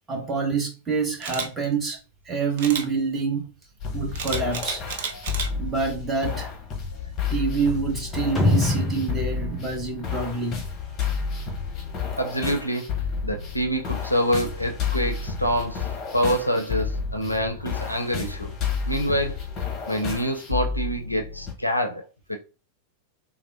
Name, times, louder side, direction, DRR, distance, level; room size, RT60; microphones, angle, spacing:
voice 1, 0.1-2.0 2.3-3.5 3.9-4.8 5.6-6.5 7.3-10.6, right 5 dB, 15° right, 1.0 m, -26 dB
Camera, 1.2-1.5 2.6-2.9 4.2-5.5 6.0-6.2, right 6 dB, 55° right, 0.5 m, -31 dB
sound 1, 3.8-21.5, left 6 dB, 30° left, 0.8 m, -31 dB
sound 2, 8.4-10.9, left 1 dB, 5° left, 1.2 m, -25 dB
voice 2, 12.2-12.9 13.2-15.9 16.1-18.5 18.9-19.3 19.9-22.4, equal, 90° left, 0.4 m, -26 dB
3.4 x 2.0 x 2.5 m
figure-of-eight pair, 90°, 0 cm